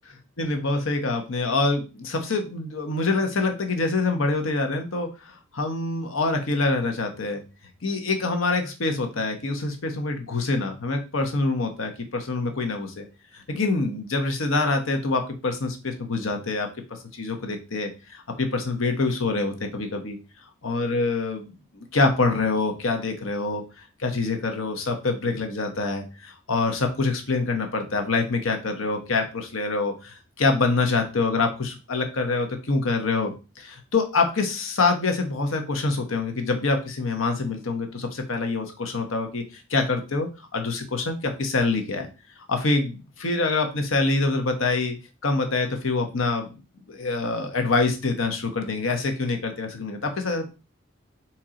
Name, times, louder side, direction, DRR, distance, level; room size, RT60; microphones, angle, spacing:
voice 1, 0.4-7.4 7.8-13.0 13.3-20.2 20.6-42.1 42.5-45.0 45.2-46.6 46.9-50.5, left 3 dB, 80° left, 4 dB, 1.0 m, -25 dB
4.4 x 3.0 x 3.8 m, 0.30 s
head